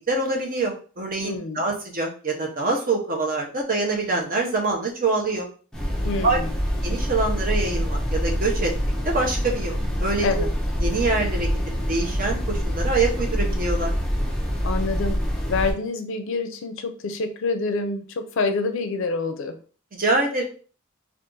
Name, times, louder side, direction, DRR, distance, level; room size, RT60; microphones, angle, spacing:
voice 1, 0.1-5.5 6.2-6.4 6.8-8.7 9.0-10.5 10.8-11.5 11.9-13.9 20.0-20.4, right 3 dB, 40° right, 1 dB, 0.8 m, -25 dB
voice 2, 1.2-1.6 6.0-6.5 10.2-10.5 14.6-15.2 15.5-19.6, left 3 dB, 65° left, 7 dB, 0.4 m, -27 dB
sound 1, 5.7-15.7, equal, 5° left, 0.5 m, -25 dB
2.6 x 2.4 x 3.7 m, 0.39 s
head